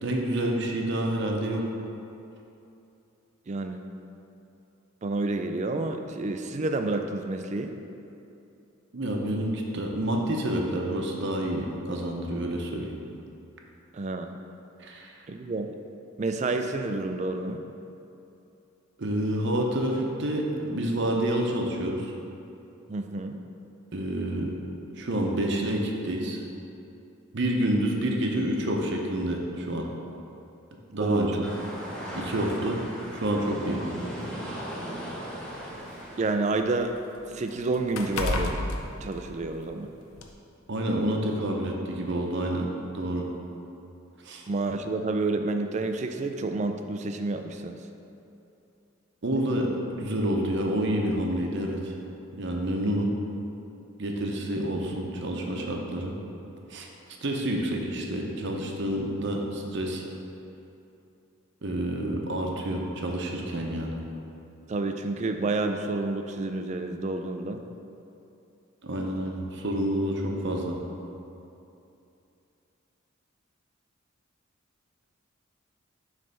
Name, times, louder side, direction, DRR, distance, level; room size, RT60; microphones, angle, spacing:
voice 1, 0.0-1.6 8.9-13.0 14.8-15.2 19.0-22.1 23.9-24.6 25.0-26.4 27.3-29.9 30.9-31.5 32.1-32.8 33.1-33.8 40.7-43.3 44.2-44.4 49.2-51.9 52.3-53.1 54.0-56.1 56.7-56.9 57.2-60.0 61.6-64.0 68.8-70.8, right 1 dB, 55° right, 1 dB, 0.7 m, -28 dB
voice 2, 3.5-3.8 5.0-7.7 13.9-14.4 15.3-15.7 16.2-17.6 22.9-23.4 31.0-31.3 36.2-36.9 37.3-38.5 39.0-39.9 44.5-47.8 64.7-67.6, right 3 dB, 35° right, 6 dB, 0.3 m, -29 dB
sound 1, 31.1-31.3 32.4-32.5 32.9-33.0 34.0-36.0 36.3-39.8 40.2-40.3, left 2 dB, 85° left, 0.6 m, -34 dB
sound 2, 31.4-36.4, equal, 5° left, 0.9 m, -37 dB
7.6 x 3.3 x 5.3 m, 2.8 s
head